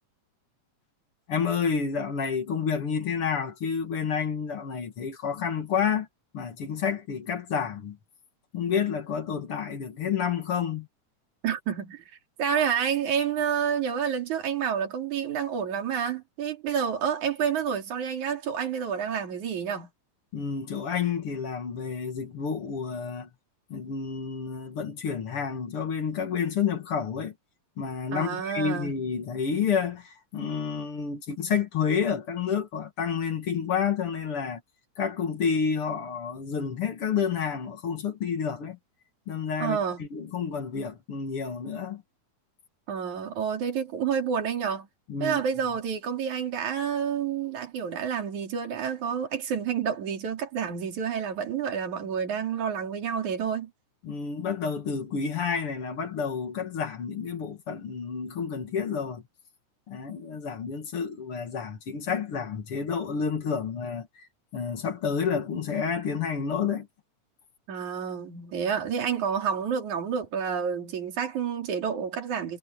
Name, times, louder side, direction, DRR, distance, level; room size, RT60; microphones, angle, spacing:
voice 1, 1.3-6.1 6.3-8.0 8.5-10.9 20.3-23.3 23.7-27.3 27.8-34.6 35.0-38.8 39.3-42.0 45.1-45.4 54.0-59.2 59.9-64.1 64.5-66.9, left 6 dB, 50° left, 2.4 m, -29 dB
voice 2, 11.4-12.0 12.4-19.9 28.1-28.9 39.6-40.0 42.9-44.9 45.2-53.7 67.7-72.6, right 7 dB, 65° right, 4.7 m, -29 dB
omnidirectional pair, 3.7 m